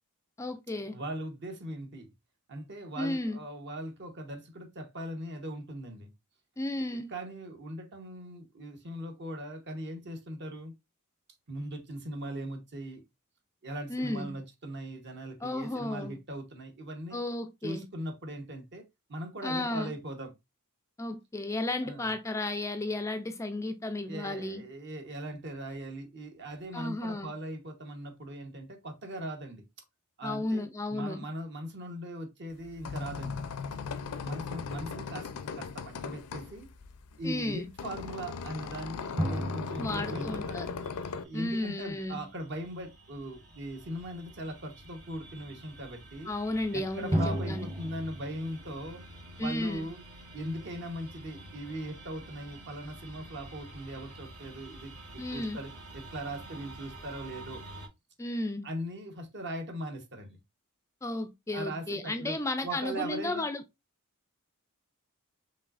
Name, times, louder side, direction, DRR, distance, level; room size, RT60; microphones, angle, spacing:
voice 1, 0.4-1.0 3.0-3.4 6.6-7.1 13.9-14.4 15.4-16.2 17.1-17.9 19.4-19.9 21.0-24.6 26.7-27.3 30.2-31.3 37.2-37.7 39.8-40.7 41.3-42.3 46.3-47.7 49.4-49.8 55.2-55.6 58.2-58.7 61.0-63.6, left 2 dB, 15° left, 0.3 m, -33 dB
voice 2, 0.9-2.1 2.5-6.1 6.9-10.7 11.5-13.0 13.6-17.2 17.6-18.8 19.1-20.3 21.8-22.1 24.1-29.6 30.2-30.6 30.9-33.4 34.2-35.3 35.6-36.7 37.2-40.8 41.2-46.3 46.7-49.0 49.4-50.0 50.3-57.6 58.6-60.4 61.5-63.5, right 1 dB, 50° right, 1.0 m, -40 dB
sound 1, 32.5-41.2, left 5 dB, 80° left, 0.5 m, -38 dB
sound 2, 34.5-36.2 39.2-41.9 47.1-50.1, equal, 25° right, 1.0 m, -36 dB
sound 3, 40.1-57.9, right 1 dB, 70° right, 1.4 m, -49 dB
5.3 x 3.1 x 2.4 m
head